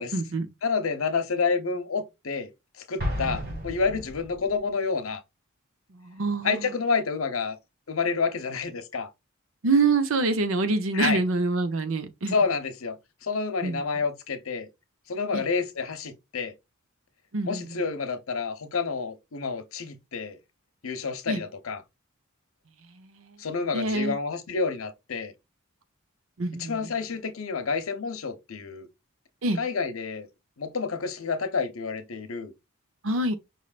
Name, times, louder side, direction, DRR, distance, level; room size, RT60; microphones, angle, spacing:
voice 1, 0.0-0.5 5.9-6.6 9.6-12.3 13.6-13.8 15.3-15.4 17.3-17.8 21.3-21.4 22.9-23.4 23.7-24.2 26.4-26.9 29.4-29.6 33.0-33.4, right 3 dB, 70° right, 0.7 m, -26 dB
voice 2, 0.6-2.5 2.8-5.2 6.4-7.6 7.9-9.1 10.9-11.2 12.3-13.0 13.2-14.7 15.1-16.5 17.4-20.4 20.8-21.8 23.4-25.3 26.6-28.9 29.6-30.3 30.6-32.5, left 4 dB, 80° left, 0.9 m, -29 dB
Explosion, 3.0-4.6, equal, 45° right, 2.2 m, -32 dB
5.4 x 3.2 x 2.4 m
head